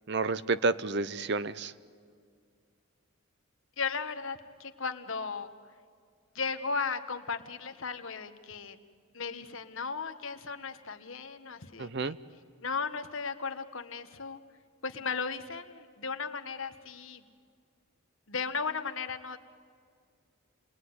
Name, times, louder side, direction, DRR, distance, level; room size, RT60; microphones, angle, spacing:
voice 1, 0.1-1.7 11.8-12.2, right 3 dB, 50° right, 15 dB, 0.7 m, -30 dB
voice 2, 3.8-5.5 6.3-8.8 9.1-12.1 12.6-14.4 14.8-17.2 18.3-19.4, left 5 dB, 65° left, 8 dB, 1.4 m, -36 dB
29.0 x 20.0 x 9.6 m, 2.1 s
head